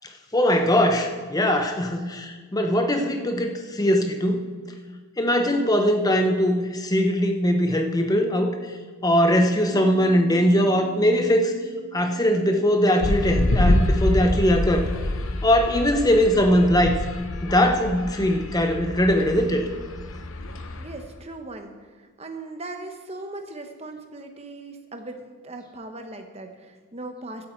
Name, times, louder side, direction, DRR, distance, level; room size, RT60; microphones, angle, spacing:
voice 1, 0.3-4.4 5.2-8.6 9.0-11.5 11.9-14.9 15.4-17.0 17.4-19.6, equal, 15° left, 5 dB, 0.9 m, -21 dB
Bass guitar, 9.7-16.0, right 13 dB, 60° right, 3.7 m, -45 dB
sound 1, 13.0-21.0, left 1 dB, 70° left, 0.9 m, -26 dB
voice 2, 20.8-27.5, right 2 dB, 30° right, 5 dB, 1.1 m, -39 dB
15.5 x 9.2 x 4.6 m, 1.5 s
head